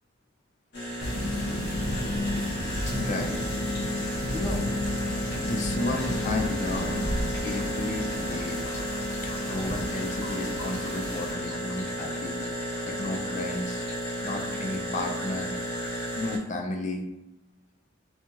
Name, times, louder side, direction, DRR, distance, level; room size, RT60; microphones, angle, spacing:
sound 1, 0.7-16.4, equal, 50° left, 0.8 m, -33 dB
sound 2, 1.0-11.3, left 1 dB, 85° left, 0.7 m, -33 dB
voice 1, 2.9-3.4 4.3-4.6 5.4-7.1 7.4-8.6 9.4-12.4 12.8-13.9 14.2-15.8 16.2-17.1, left 2 dB, 35° left, 3 dB, 0.4 m, -33 dB
sound 3, 7.0-8.5, right 1 dB, 70° left, 1.2 m, -34 dB
2.8 x 2.3 x 2.9 m, 0.95 s
head